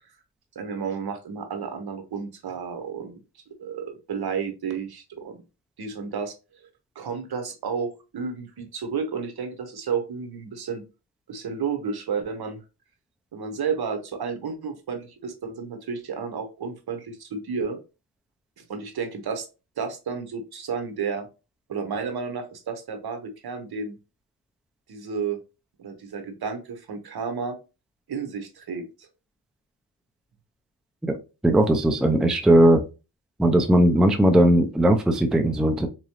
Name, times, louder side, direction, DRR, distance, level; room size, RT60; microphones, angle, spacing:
voice 1, 0.5-3.2 3.6-5.4 5.8-6.3 6.9-10.8 11.3-12.6 13.3-17.8 18.6-19.5 19.8-21.3 21.7-24.0 24.9-25.4 25.8-27.6 28.1-29.1, right 5 dB, 65° right, 0.9 m, -31 dB
voice 2, 31.4-32.8 33.4-35.9, right 1 dB, ahead, 0.4 m, -18 dB
3.7 x 3.0 x 2.9 m
wide cardioid pair, 95°, 41 cm